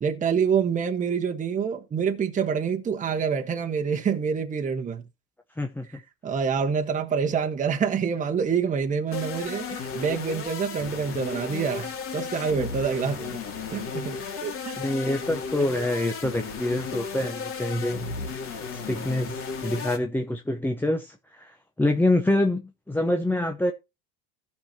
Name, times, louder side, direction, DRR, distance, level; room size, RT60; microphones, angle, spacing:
voice 1, 0.0-5.0 6.2-13.4 13.7-14.2 14.4-14.8, right 6 dB, 25° right, 1.2 m, -26 dB
voice 2, 5.6-5.9 12.6-12.7 14.2-14.5 14.8-18.4 18.7-23.7, left 1 dB, 5° left, 0.9 m, -26 dB
sound 1, 9.1-20.0, left 5 dB, 45° left, 2.7 m, -34 dB
15.5 x 5.9 x 2.8 m
hypercardioid pair, 85°, 30 cm